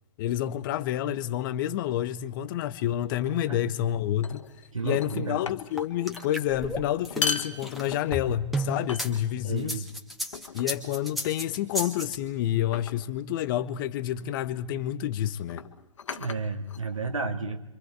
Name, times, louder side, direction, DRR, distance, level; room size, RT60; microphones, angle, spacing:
voice 1, 0.2-4.5 4.8-9.8 10.5-15.6, left 12 dB, 40° left, 1.1 m, -29 dB
sound 1, 3.1-3.4 4.2-4.7 5.0-5.9 6.1-6.4 7.0-8.4 8.9-9.5 10.3-10.8 11.7-12.1 12.7-13.1 14.3-14.5 15.4-17.2, left 5 dB, 70° left, 1.9 m, -36 dB
voice 2, 4.7-5.4 9.4-9.9 16.1-17.7, right 4 dB, 80° right, 2.7 m, -32 dB
sound 2, 5.8-9.1 9.6-12.2, equal, ahead, 2.2 m, -33 dB
28.5 x 25.5 x 4.7 m
figure-of-eight pair, 120°, 17 cm